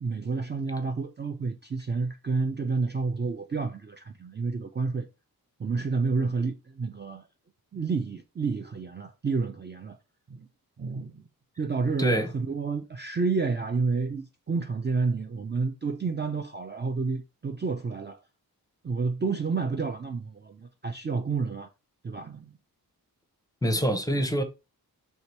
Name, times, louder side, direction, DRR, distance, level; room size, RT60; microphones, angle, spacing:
voice 1, 0.0-5.1 5.6-7.3 7.7-10.0 10.3-10.5 10.8-11.2 11.6-18.2 18.8-21.7 22.0-22.5, right 4 dB, 30° right, 0.5 m, -30 dB
voice 2, 12.0-12.3 23.6-24.4, equal, 10° left, 0.7 m, -25 dB
3.3 x 2.8 x 4.5 m
wide cardioid pair, 80°, 37 cm